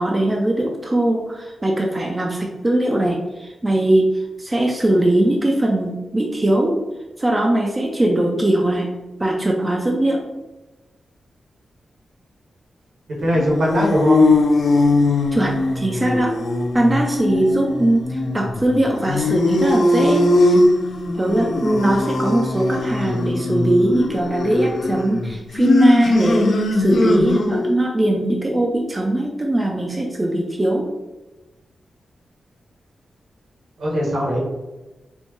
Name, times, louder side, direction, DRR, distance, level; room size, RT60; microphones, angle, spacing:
voice 1, 0.0-6.8 7.2-8.9 9.2-10.2 15.3-16.4 16.7-20.6 21.2-30.9, right 1 dB, 20° right, 1 dB, 0.4 m, -20 dB
voice 2, 13.2-14.3 33.8-34.4, equal, 75° right, -4 dB, 1.3 m, -20 dB
sound 1, 13.3-27.8, left 2 dB, 60° left, 0.4 m, -20 dB
4.3 x 2.2 x 3.0 m, 1.1 s
wide cardioid pair, 140°, 0 cm